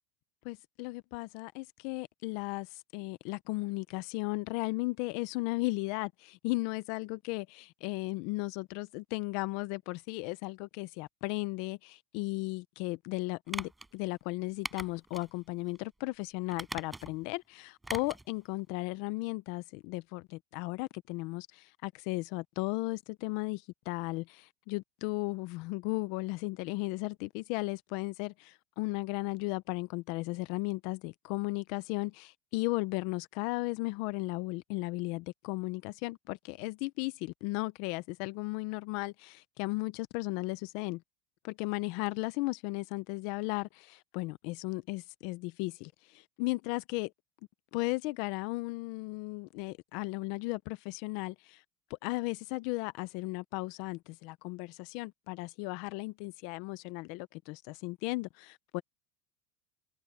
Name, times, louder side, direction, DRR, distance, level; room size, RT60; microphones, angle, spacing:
voice 1, 0.4-41.0 41.4-47.1 47.7-51.6 52.0-58.8, left 23 dB, 65° left, 0.8 m, -35 dB
sound 1, 13.5-13.9 14.6-15.3 15.7-15.8 16.5-17.2 17.8-18.3 18.6-18.7, right 2 dB, 10° right, 5.7 m, -41 dB
supercardioid pair, 130°, 0 cm